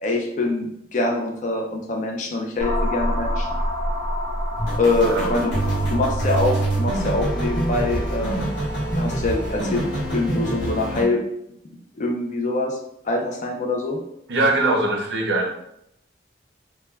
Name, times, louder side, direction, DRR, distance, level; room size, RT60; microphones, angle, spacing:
voice 1, 0.0-3.5 4.8-5.5 5.9-8.4 9.0-9.8 10.1-11.2 12.0-12.8 13.0-14.0, left 2 dB, 40° left, 0 dB, 0.4 m, -24 dB
sound 1, 2.6-10.2, equal, 20° left, 0.8 m, -29 dB
sound 2, 4.6-11.0, right 1 dB, 80° left, 1.0 m, -25 dB
voice 2, 5.0-5.3 14.3-15.5, right 2 dB, 65° right, 1 dB, 0.5 m, -21 dB
2.2 x 2.2 x 3.2 m, 0.77 s
head